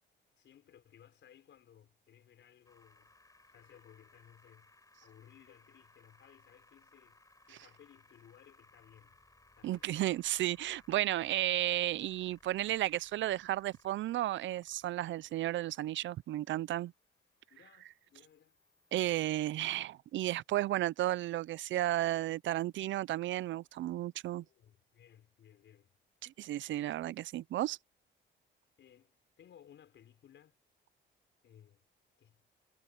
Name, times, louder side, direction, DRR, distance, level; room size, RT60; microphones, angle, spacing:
voice 1, 0.4-3.1 3.5-4.7 5.0-7.2 7.5-9.2 9.6-10.0 17.5-18.6 24.4-25.9 28.8-30.6 31.4-31.8 32.2-32.4, left 10 dB, 65° left, 5.7 m, -61 dB
sound 1, 2.6-19.6, left 2 dB, 15° left, 6.9 m, -66 dB
voice 2, 9.6-16.9 18.9-24.4 26.2-27.8, right 14 dB, 70° right, 0.6 m, -33 dB
cardioid pair, 90°, 20 cm